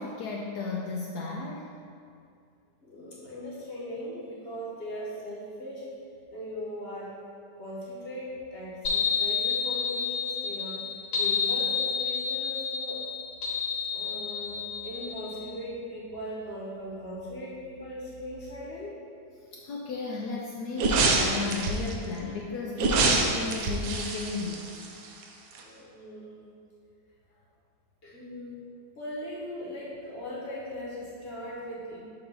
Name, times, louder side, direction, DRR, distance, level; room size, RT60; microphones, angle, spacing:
voice 1, 0.0-1.7 19.5-24.7, left 4 dB, 70° left, -2 dB, 0.9 m, -34 dB
voice 2, 2.8-5.9 6.3-7.1 7.6-10.8 11.2-13.0 13.9-19.0 25.6-26.5 28.0-28.6 29.0-32.0, left 1 dB, 40° left, -6 dB, 1.1 m, -39 dB
sound 1, 8.8-15.5, left 6 dB, 90° left, 2.0 m, -29 dB
sound 2, 20.8-21.9 22.8-25.2 25.5-25.6, right 3 dB, 75° right, 1.4 m, -26 dB
6.8 x 2.9 x 5.3 m, 2.4 s
omnidirectional pair, 2.1 m